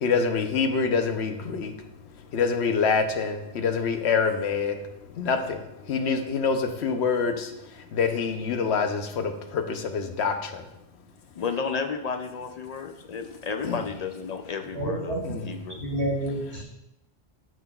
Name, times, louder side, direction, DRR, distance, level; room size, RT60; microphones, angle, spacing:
voice 1, 0.0-1.7 2.3-4.7 5.2-5.6 5.9-7.5 7.9-9.6 9.9-10.3 13.6-13.7 15.2-15.5, left 5 dB, 80° left, 6 dB, 1.0 m, -25 dB
voice 2, 11.4-15.8, left 5 dB, 55° left, 6 dB, 0.4 m, -32 dB
voice 3, 14.7-15.2 15.8-16.6, right 1 dB, 80° right, -1 dB, 2.0 m, -29 dB
8.9 x 6.4 x 2.3 m, 0.89 s
omnidirectional pair, 1.1 m